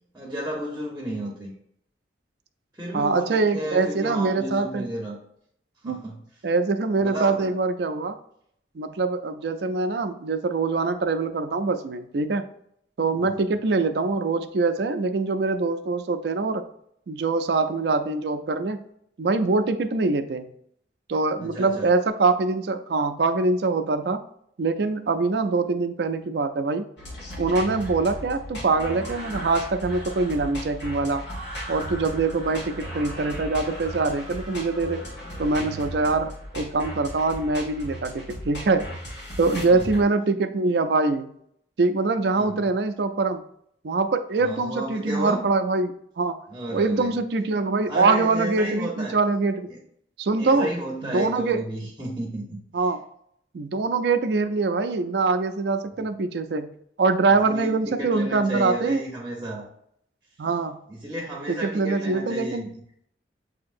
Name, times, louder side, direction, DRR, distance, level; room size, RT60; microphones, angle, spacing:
voice 1, 0.1-1.5 2.7-5.2 5.8-6.2 7.0-7.5 13.2-13.5 21.4-21.9 39.4-40.0 42.3-42.6 44.4-45.4 46.5-47.2 47.9-49.2 49.7-49.8 50.4-52.6 57.4-59.7 60.9-62.7, right 1 dB, 15° right, -2 dB, 0.8 m, -32 dB
voice 2, 2.9-4.8 5.8-6.0 6.4-8.2 8.8-12.5 13.0-16.6 17.1-18.8 19.2-20.4 21.1-24.2 24.6-26.8 27.4-31.2 31.7-35.0 35.4-38.9 39.4-41.3 41.8-43.4 43.8-46.4 46.7-49.7 50.2-50.7 51.0-51.6 52.7-53.0 53.5-56.7 57.0-59.0 60.4-60.8 61.5-62.7, right 3 dB, 65° right, 8 dB, 0.4 m, -24 dB
sound 1, 27.0-40.0, equal, 80° left, 1.5 m, -36 dB
7.2 x 2.8 x 2.5 m, 0.70 s
head